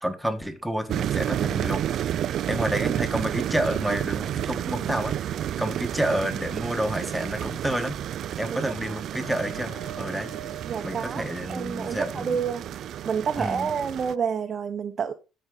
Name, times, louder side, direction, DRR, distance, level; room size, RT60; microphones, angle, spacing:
voice 1, 0.0-2.2 2.5-5.1 5.6-8.0 8.4-10.3 10.8-12.4 13.4-13.7, right 1 dB, 5° right, 1.5 m, -29 dB
sound 1, 0.9-14.1, right 11 dB, 60° right, 0.4 m, -31 dB
voice 2, 8.5-9.0 10.7-12.6 13.0-15.1, right 6 dB, 45° right, 0.8 m, -29 dB
sound 2, 9.2-11.9, right 4 dB, 45° left, 3.0 m, -44 dB
13.0 x 4.7 x 3.9 m
supercardioid pair, 85°, 0 cm